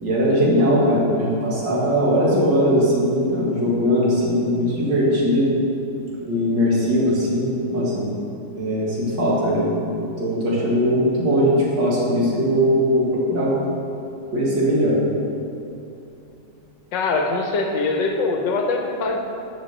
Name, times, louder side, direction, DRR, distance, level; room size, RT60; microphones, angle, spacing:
voice 1, 0.0-5.5 6.3-8.1 8.6-13.6 14.3-15.0, equal, 60° right, -5 dB, 2.4 m, -20 dB
voice 2, 16.9-19.2, left 3 dB, 70° left, 3 dB, 1.3 m, -22 dB
6.3 x 6.2 x 6.5 m, 2.8 s
omnidirectional pair, 2.2 m